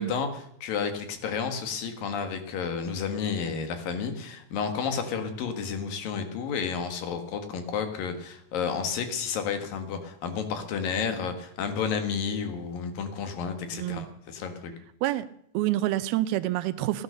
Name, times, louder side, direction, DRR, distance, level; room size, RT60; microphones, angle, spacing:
voice 1, 0.0-14.7, left 6 dB, 65° left, 7 dB, 3.3 m, -31 dB
voice 2, 13.7-14.1 15.0-15.2 15.5-17.0, right 15 dB, 80° right, 13 dB, 2.7 m, -27 dB
17.0 x 11.5 x 6.6 m, 0.71 s
omnidirectional pair, 4.4 m